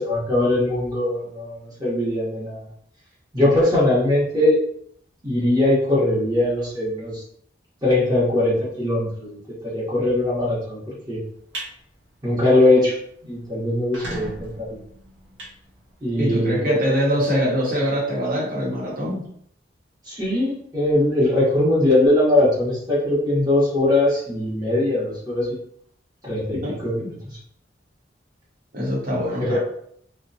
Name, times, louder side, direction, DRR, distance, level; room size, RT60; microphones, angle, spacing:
voice 1, 0.0-2.7 3.3-4.6 5.2-7.2 7.8-9.4 9.7-11.2 12.2-12.9 13.2-14.8 16.0-16.8 20.1-25.5 26.2-27.1 29.4-29.6, left 1 dB, 20° right, -8 dB, 0.9 m, -21 dB
sound 1, 11.2-11.7 12.2-12.4 12.8-12.9 13.1-13.2 13.7-16.3, right 2 dB, 90° right, 0.6 m, -36 dB
voice 2, 16.2-19.2 26.6-26.7 28.7-29.6, equal, 50° right, -4 dB, 0.9 m, -23 dB
2.7 x 2.1 x 2.6 m, 0.67 s
head